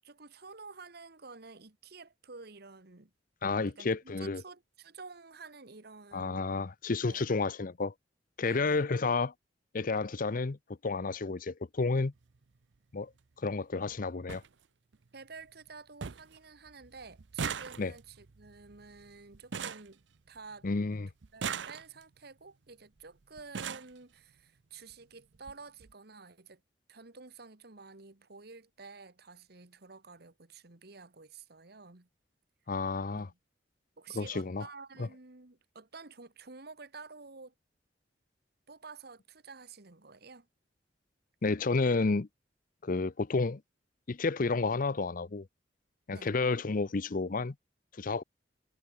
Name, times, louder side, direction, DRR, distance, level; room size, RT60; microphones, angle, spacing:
voice 1, 0.0-3.1 3.6-6.6 7.0-7.3 8.4-8.9 15.1-20.7 21.3-26.6 26.9-32.1 33.1-33.3 34.0-37.5 38.7-40.5 46.1-46.4, right 4 dB, 60° right, 1.6 m, -50 dB
voice 2, 3.4-4.4 6.1-7.9 8.4-9.3 9.7-10.6 10.8-12.1 12.9-13.1 13.4-14.4 17.8-17.9 20.6-21.1 32.7-33.3 34.1-34.6 35.0-35.1 41.4-42.3 42.8-43.6 44.1-45.5 46.1-47.5 48.0-48.2, left 3 dB, 50° left, 0.7 m, -31 dB
sound 1, 12.1-12.4 13.6-13.7 13.9-14.0 14.3-14.5 14.9-15.4 15.7-15.8 16.0-16.4 16.7-20.6 21.2-22.2 23.0-23.1 23.4-24.0 24.9-25.0 25.3-25.5 25.8-25.9, right 6 dB, 85° right, 0.7 m, -40 dB
head